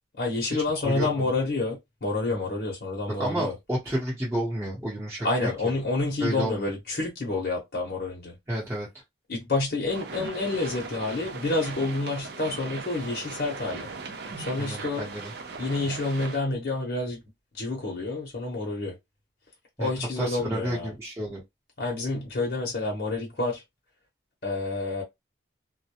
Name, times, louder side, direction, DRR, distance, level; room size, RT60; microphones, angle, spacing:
voice 1, 0.2-3.5 5.2-8.3 9.3-13.9 14.4-15.1 15.6-17.2 17.5-18.9 19.8-20.9 21.8-23.6 24.4-25.0, left 2 dB, 55° left, 0.8 m, -28 dB
voice 2, 0.8-1.3 3.2-5.5 6.2-6.7 8.5-8.9 14.6-15.3 19.8-21.4, right 1 dB, 15° right, 0.9 m, -31 dB
sound 1, 9.9-16.4, right 4 dB, 60° right, 0.5 m, -38 dB
2.2 x 2.1 x 2.8 m
head